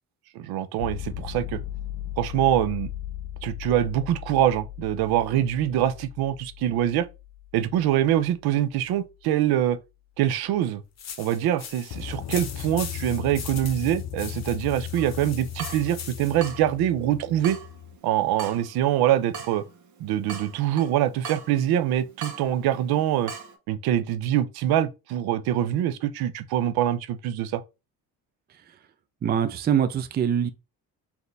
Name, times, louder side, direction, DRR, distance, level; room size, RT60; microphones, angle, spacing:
voice 1, 0.3-1.6 2.2-2.9 3.4-7.1 7.5-9.8 10.2-10.8 11.2-17.6 18.0-19.6 20.0-23.3 23.7-27.6, right 11 dB, 75° right, 0.6 m, -24 dB
sound 1, 0.8-8.6 11.9-18.0, left 11 dB, 65° left, 0.5 m, -37 dB
sound 2, 11.0-16.5, left 7 dB, 45° left, 1.0 m, -40 dB
Water tap faucet / Drip, 15.0-23.6, right 6 dB, 50° right, 1.1 m, -42 dB
voice 2, 29.2-30.5, right 8 dB, 25° right, 0.4 m, -23 dB
4.1 x 2.8 x 3.3 m
cardioid pair, 115°, 37 cm